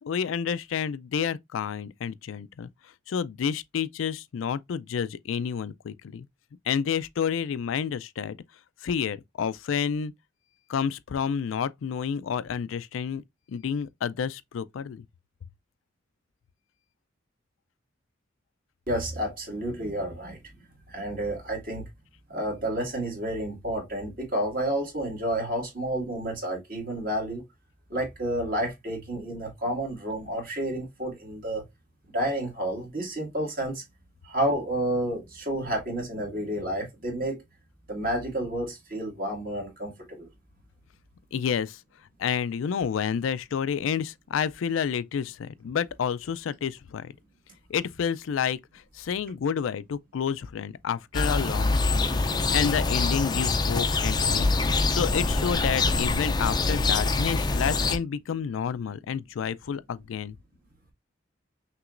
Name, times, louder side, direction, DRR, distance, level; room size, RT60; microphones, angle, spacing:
voice 1, 0.0-2.7 3.1-6.3 6.7-8.4 8.8-10.1 10.7-13.2 13.5-15.0 41.3-41.8 42.2-47.1 47.7-52.2 52.5-60.4, left 7 dB, 85° left, 0.4 m, -29 dB
voice 2, 18.9-20.4 20.9-21.8 22.3-27.4 27.9-31.6 32.1-33.8 34.2-37.4 37.9-40.3, right 1 dB, 45° right, 1.9 m, -30 dB
sound 1, 51.1-58.0, left 3 dB, 20° left, 0.4 m, -25 dB
5.9 x 3.0 x 2.5 m
head